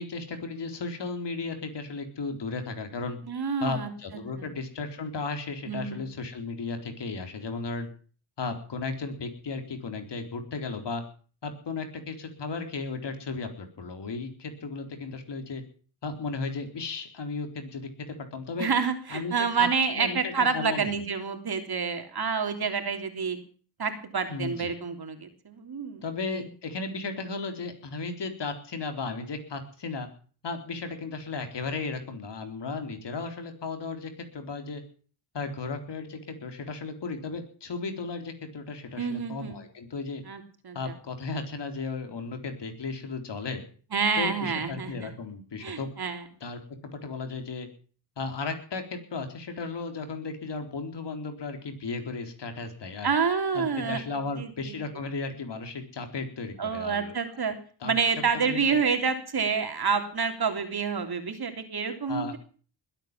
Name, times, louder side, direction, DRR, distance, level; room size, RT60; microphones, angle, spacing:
voice 1, 0.0-3.2 3.6-7.9 8.4-11.0 11.4-15.6 16.0-18.7 19.1-20.9 24.3-24.7 26.0-30.1 30.4-34.8 35.3-40.2 40.7-43.6 44.2-45.9 46.4-47.7 48.2-53.1 53.5-57.4 57.8-57.9 58.3-58.8 62.1-62.3, left 4 dB, 65° left, 6 dB, 4.0 m, -35 dB
voice 2, 3.3-3.9 4.4-4.5 5.7-6.1 18.6-23.4 23.8-26.0 26.3-26.5 39.0-39.6 40.3-40.9 43.9-45.1 45.6-46.2 53.0-54.0 54.4-54.8 56.6-57.5 57.8-62.4, right 5 dB, 55° right, 6 dB, 3.4 m, -28 dB
21.0 x 9.0 x 7.5 m, 0.43 s
cardioid pair, 65°, 45 cm